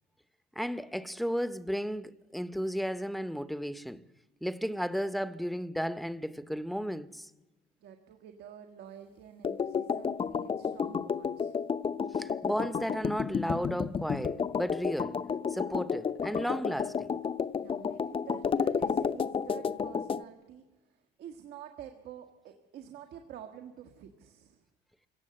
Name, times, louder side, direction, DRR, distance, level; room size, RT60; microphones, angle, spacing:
voice 1, 0.6-4.0 4.4-7.3 12.1-15.2 15.5-17.2, equal, ahead, 0.8 m, -34 dB
voice 2, 7.8-11.6 17.6-24.6, right 9 dB, 75° right, 1.7 m, -49 dB
sound 1, 9.4-20.2, left 6 dB, 30° left, 0.8 m, -31 dB
27.5 x 17.5 x 7.7 m
cardioid pair, 110°, 17 cm